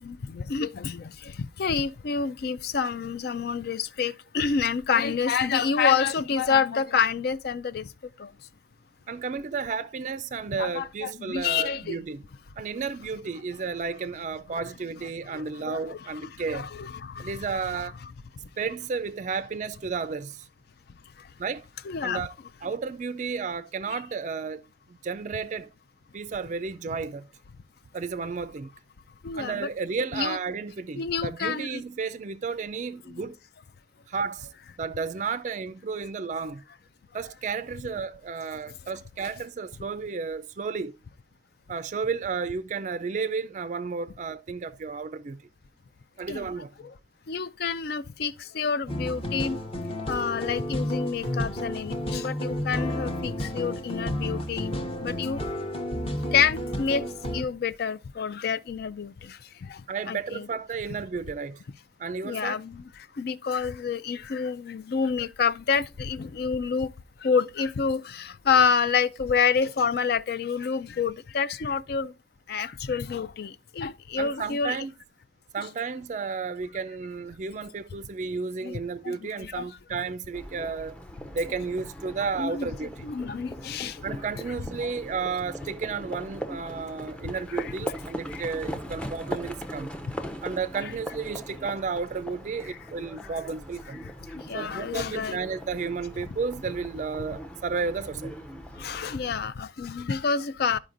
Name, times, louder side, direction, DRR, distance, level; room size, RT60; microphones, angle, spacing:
voice 1, 0.0-7.9 8.2-8.3 10.6-12.0 15.3-17.4 21.9-22.2 29.2-29.7 30.1-30.4 31.0-31.8 33.1-33.2 46.3-46.5 47.3-49.6 50.1-54.7 55.0-55.4 56.3-57.0 57.3-59.8 60.1-60.5 62.2-66.9 67.2-72.1 72.5-74.8 78.6-79.2 79.4-79.6 82.4-82.7 83.0-84.0 84.8-84.9 87.5-87.7 88.3-88.4 92.7-92.8 94.3-95.4 98.8-100.8, left 6 dB, 60° left, 0.4 m, -28 dB
voice 2, 9.1-12.2 12.6-16.7 17.2-17.9 18.6-20.5 21.4-21.7 22.0-22.3 22.6-24.6 24.9-25.7 26.1-27.3 27.9-28.7 29.4-33.4 34.1-34.5 34.8-36.6 37.1-41.0 41.7-45.5 46.2-46.9 59.9-61.6 62.0-62.6 74.2-74.9 75.5-81.0 81.3-83.1 84.0-89.9 90.4-94.1 94.5-98.3, right 5 dB, 40° right, 0.4 m, -32 dB
sound 1, 48.9-57.4, equal, 30° left, 0.8 m, -31 dB
Livestock farm animals working animals, 80.3-99.3, equal, 5° left, 0.5 m, -40 dB
12.5 x 4.9 x 2.5 m
head